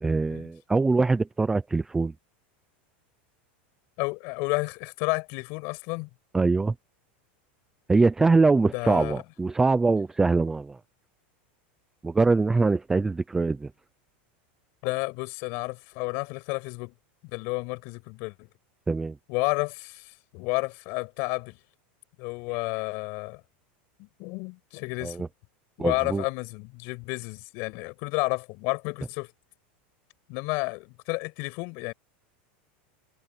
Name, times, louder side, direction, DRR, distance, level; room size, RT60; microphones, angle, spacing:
voice 1, 0.0-2.1 6.3-6.7 7.9-10.8 12.0-13.7 18.9-19.1 25.0-25.3 25.8-26.2, right 3 dB, 5° right, 0.5 m, -23 dB
voice 2, 4.0-6.1 8.7-9.2 14.8-16.9 17.3-18.5 19.3-21.6 22.2-23.4 24.0-25.3 25.8-29.3 30.3-31.9, left 28 dB, 45° left, 7.6 m, -31 dB
supercardioid pair, 175°, 6 cm